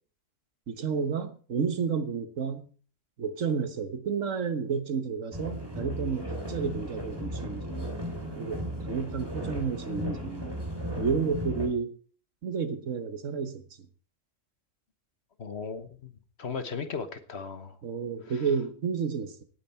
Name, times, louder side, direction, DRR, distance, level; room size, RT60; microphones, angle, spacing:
voice 1, 0.7-2.7 3.2-8.0 8.3-10.6 11.0-11.9 12.4-13.6 17.8-19.4, right 6 dB, 80° right, 11 dB, 1.6 m, -31 dB
sound 1, 5.3-11.7, equal, 20° right, 3.0 m, -35 dB
voice 2, 15.4-16.1 16.4-17.8, left 5 dB, 60° left, 10 dB, 1.6 m, -36 dB
17.5 x 9.2 x 4.4 m, 0.41 s
omnidirectional pair, 1.3 m